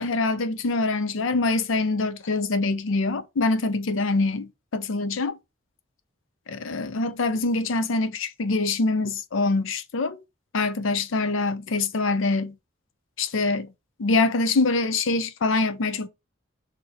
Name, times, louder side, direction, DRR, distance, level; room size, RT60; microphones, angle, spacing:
voice 1, 0.0-5.4 6.5-10.2 10.5-12.6 13.2-13.7 14.0-16.1, left 3 dB, 90° left, 0.6 m, -24 dB
3.8 x 2.9 x 4.2 m
head